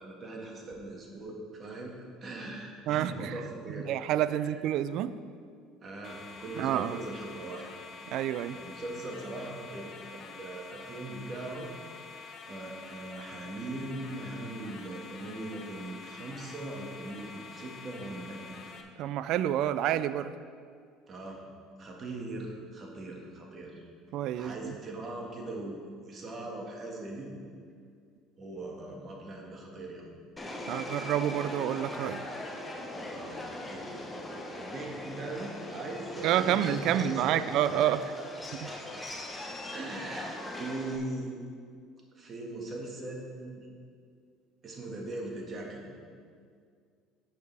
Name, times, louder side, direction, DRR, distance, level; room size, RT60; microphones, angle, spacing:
voice 1, 0.0-1.9 2.2-3.9 4.3-4.4 5.8-7.7 8.5-11.7 12.0-18.6 21.1-21.4 21.8-23.7 24.3-27.3 28.4-30.1 33.1-33.4 33.7-33.9 34.5-37.9 38.7-39.0 39.4-41.4 42.2-43.7 44.6-45.9, right 2 dB, 40° right, -1 dB, 1.9 m, -40 dB
voice 2, 2.9-3.4 3.9-5.2 6.6-7.0 8.1-8.6 19.0-20.3 24.1-24.7 30.7-32.3 36.2-38.0 38.6-38.7, right 11 dB, 65° right, 14 dB, 0.3 m, -28 dB
sound 1, 6.0-18.8, left 5 dB, 45° left, 0.9 m, -47 dB
Subway metro underground, 30.4-41.0, left 1 dB, 15° left, 1.1 m, -40 dB
11.0 x 6.9 x 3.5 m, 2.2 s
supercardioid pair, 95°, 0 cm